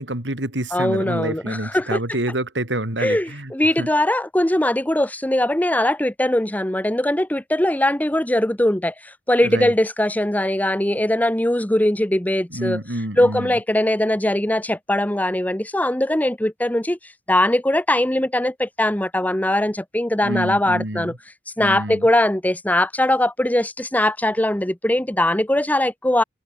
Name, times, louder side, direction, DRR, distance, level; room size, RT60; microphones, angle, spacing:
voice 1, 0.0-3.5 3.8-3.9 9.4-9.7 12.5-13.6 20.2-21.2 21.6-22.1, right 1 dB, 70° right, 4.5 m, -27 dB
voice 2, 0.7-2.0 3.0-8.9 9.3-12.8 13.2-17.0 17.3-21.1 21.6-26.2, left 1 dB, 10° left, 1.0 m, -20 dB
open air
head